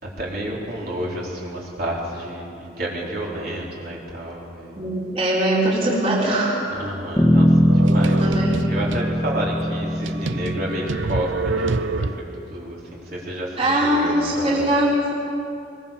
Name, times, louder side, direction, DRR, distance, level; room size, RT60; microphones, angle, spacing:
voice 1, 0.0-4.8 6.7-8.3 8.7-14.7, right 1 dB, 50° right, -4 dB, 4.2 m, -30 dB
voice 2, 4.8-6.6 7.9-8.5 13.6-15.1, right 1 dB, 30° right, -5 dB, 4.0 m, -21 dB
Bass guitar, 7.2-11.6, equal, 5° left, 1.9 m, -20 dB
sound 1, 7.7-9.1 9.6-9.7 10.1-12.5, right 3 dB, 75° right, 0.7 m, -27 dB
22.0 x 22.0 x 7.2 m, 2.6 s
head